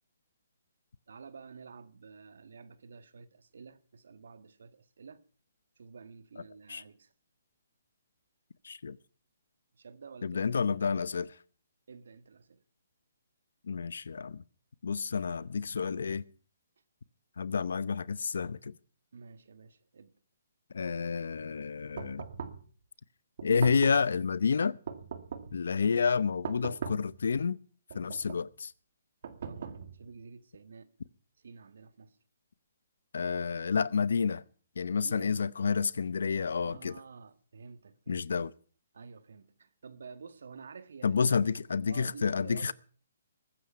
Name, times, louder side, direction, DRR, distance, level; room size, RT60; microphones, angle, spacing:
voice 1, 1.1-5.2 5.8-7.1 9.7-10.6 11.9-12.6 19.1-20.1 29.5-30.9 31.4-32.2 34.9-35.3 36.6-38.3 38.9-41.3 41.9-42.7, right 5 dB, 75° right, 1.6 m, -50 dB
voice 2, 8.6-9.0 10.2-11.3 13.7-14.4 14.8-16.2 17.4-18.7 20.7-22.3 23.4-24.8 25.5-27.6 27.9-28.7 33.1-34.4 34.8-36.9 38.1-38.5 41.0-42.7, left 5 dB, 75° left, 0.8 m, -29 dB
sound 1, 22.0-22.7 23.4-24.1 24.9-25.6 26.4-27.2 27.9-28.5 29.2-30.1, right 6 dB, 55° right, 2.0 m, -40 dB
21.0 x 9.6 x 5.7 m
hypercardioid pair, 155°, 0 cm